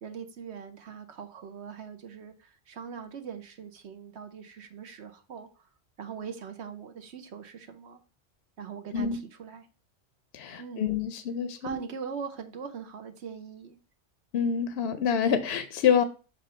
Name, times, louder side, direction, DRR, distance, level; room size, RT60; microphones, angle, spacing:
voice 1, 0.0-5.6 6.0-8.0 8.6-9.7 10.6-11.0 11.6-13.8, right 6 dB, 65° right, 1.1 m, -41 dB
voice 2, 10.3-11.8 14.3-16.0, left 7 dB, 65° left, 0.8 m, -27 dB
7.2 x 2.6 x 5.4 m
omnidirectional pair, 1.2 m